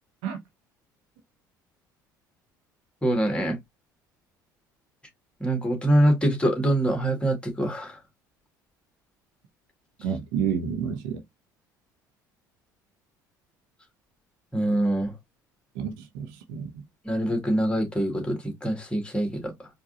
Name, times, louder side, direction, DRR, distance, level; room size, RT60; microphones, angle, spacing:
voice 1, 3.0-3.6 5.4-8.0 14.5-15.1 17.0-19.7, right 1 dB, 10° left, 1.9 m, -24 dB
voice 2, 10.0-11.2 15.7-16.8, right 7 dB, 65° right, 0.8 m, -30 dB
4.7 x 2.6 x 2.4 m
figure-of-eight pair, 60°, 11 cm